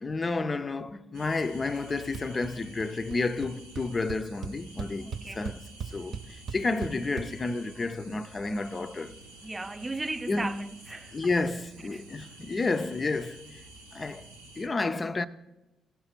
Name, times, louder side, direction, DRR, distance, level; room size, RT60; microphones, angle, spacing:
voice 1, 0.0-5.6 5.9-9.2 10.3-10.7 11.1-13.6 13.9-14.3 14.6-15.3, left 3 dB, 30° left, 0.5 m, -31 dB
sound 1, 1.1-14.7, right 2 dB, 85° right, 0.8 m, -50 dB
sound 2, 2.1-2.5 2.8-3.2 3.4-3.5 3.8-7.3, right 6 dB, 55° right, 0.8 m, -37 dB
voice 2, 4.9-5.4 9.1-9.2 9.4-11.3 11.9-12.0, right 2 dB, 20° right, 0.4 m, -37 dB
16.5 x 5.7 x 4.4 m
figure-of-eight pair, 40°, 0 cm